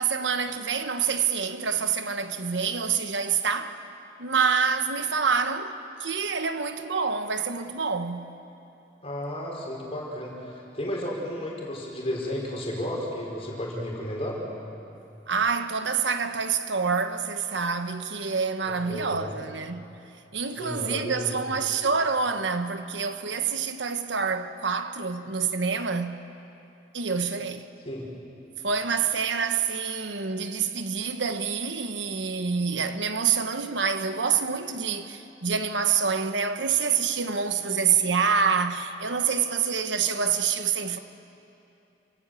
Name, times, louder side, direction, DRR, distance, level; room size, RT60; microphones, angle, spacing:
voice 1, 0.0-3.8 4.2-8.3 15.3-20.0 20.3-26.3 26.9-27.7 28.6-41.0, right 6 dB, 85° right, 1.2 m, -27 dB
voice 2, 9.0-14.4 18.7-19.4 20.5-21.5 27.9-28.0, equal, 35° left, 5.1 m, -33 dB
28.5 x 16.0 x 8.5 m
head